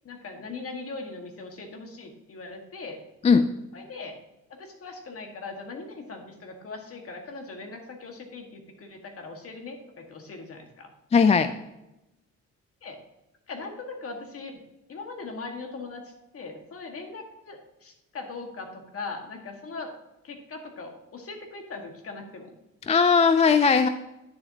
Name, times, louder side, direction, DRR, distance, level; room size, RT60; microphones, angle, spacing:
voice 1, 0.0-3.0 3.7-4.1 4.5-10.9 12.8-13.0 13.5-14.6 14.9-19.9 20.2-22.5, left 3 dB, 50° left, 3 dB, 1.6 m, -40 dB
voice 2, 11.1-11.5 22.9-23.9, left 5 dB, 20° left, 10 dB, 0.3 m, -18 dB
10.0 x 7.0 x 2.8 m, 0.93 s
cardioid pair, 90°, 30 cm